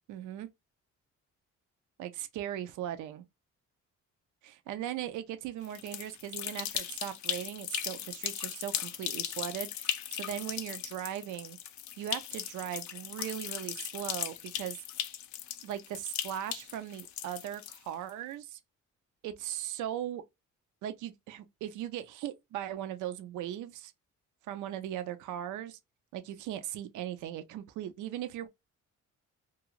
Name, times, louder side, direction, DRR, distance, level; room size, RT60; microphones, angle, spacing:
voice 1, 0.1-0.5 2.0-3.2 4.4-11.6 12.0-14.8 15.6-18.6 19.2-20.2 20.8-23.9 24.5-25.8 26.1-28.5, right 11 dB, 80° right, 0.4 m, -38 dB
sound 1, 5.6-18.1, left 10 dB, 70° left, 0.5 m, -38 dB
2.4 x 2.4 x 3.0 m
cardioid pair, 90°, 30 cm